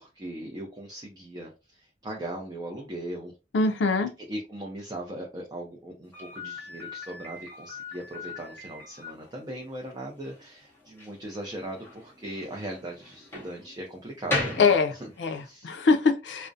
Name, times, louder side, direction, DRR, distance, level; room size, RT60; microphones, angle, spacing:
voice 1, 0.0-3.3 4.3-14.7 15.0-15.1 15.4-15.8, right 1 dB, 20° right, 0.4 m, -39 dB
voice 2, 3.5-4.1 14.6-14.9 15.2-16.5, left 4 dB, 80° left, 0.4 m, -23 dB
Slam, 6.1-15.5, left 2 dB, 15° left, 0.8 m, -38 dB
2.4 x 2.0 x 2.5 m
head